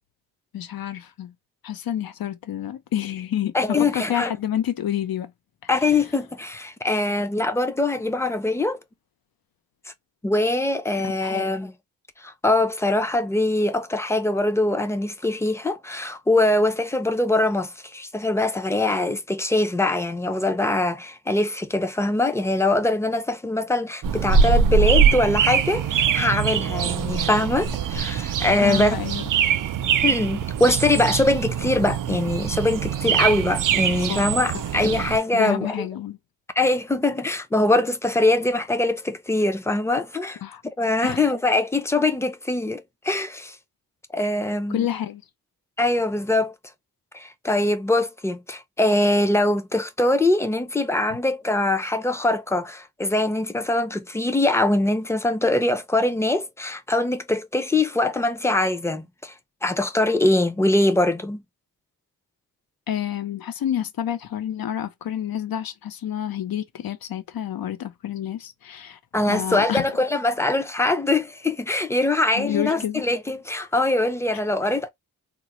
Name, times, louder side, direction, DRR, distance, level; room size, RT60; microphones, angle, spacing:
voice 1, 0.5-1.3 1.6-5.3 5.8-5.9 11.0-11.5 28.6-29.2 34.1-34.2 34.5-34.6 35.3-36.2 40.4-40.6 41.0-41.2 44.7-45.2 62.9-69.0 69.3-69.9 72.3-73.0, left 10 dB, 80° left, 0.6 m, -29 dB
voice 2, 3.5-4.3 5.7-8.8 10.2-11.7 12.2-29.0 30.0-35.9 36.6-40.4 40.8-43.6 44.1-44.9 45.8-46.5 47.1-59.3 59.6-61.4 69.1-74.9, left 2 dB, 10° left, 0.4 m, -22 dB
sound 1, 24.0-35.2, right 7 dB, 65° right, 0.5 m, -23 dB
3.7 x 2.0 x 2.8 m
wide cardioid pair, 110°, 35 cm